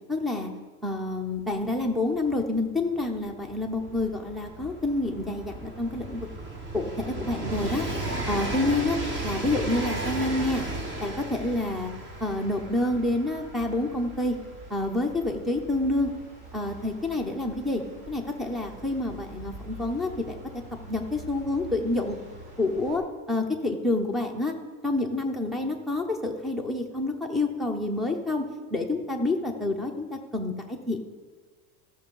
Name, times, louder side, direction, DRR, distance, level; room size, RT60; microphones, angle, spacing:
voice 1, 0.1-0.5 0.8-6.3 6.7-7.9 8.3-9.0 9.2-10.6 11.0-11.9 12.2-14.4 14.7-16.1 16.5-20.6 20.9-22.2 22.6-23.0 23.3-24.5 24.8-31.1, left 2 dB, ahead, 4 dB, 0.4 m, -28 dB
Train, 1.4-1.5 1.7-18.3 19.3-19.4, right 2 dB, 25° right, 1.2 m, -35 dB
sound 1, 3.8-23.0, right 1 dB, 50° right, 3.8 m, -47 dB
13.5 x 6.4 x 5.3 m, 1.5 s
supercardioid pair, 160°, 44 cm